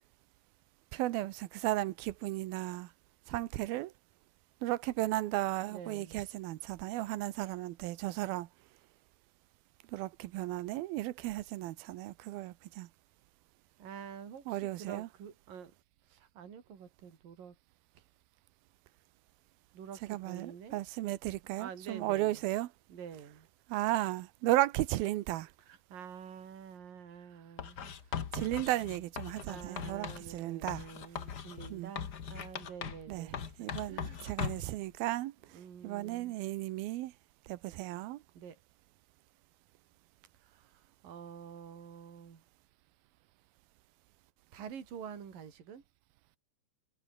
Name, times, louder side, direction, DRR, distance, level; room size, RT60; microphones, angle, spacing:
voice 1, 0.9-2.9 3.3-3.9 4.6-8.5 9.9-12.9 14.5-15.1 20.1-22.7 23.7-25.5 28.3-30.9 31.7-31.9 33.1-33.3 33.6-37.1 37.5-38.2, right 16 dB, 90° right, 2.8 m, -34 dB
voice 2, 5.7-6.2 13.8-15.7 16.1-17.6 18.0-18.1 19.7-20.8 21.6-22.4 22.9-23.5 25.6-27.9 29.5-34.3 35.5-36.3 38.3-38.6 40.4-42.4 44.5-45.8, right 7 dB, 70° right, 4.9 m, -48 dB
Writing, 27.6-30.3 30.7-33.1 33.3-34.7, left 7 dB, 65° left, 1.0 m, -40 dB
omnidirectional pair, 4.2 m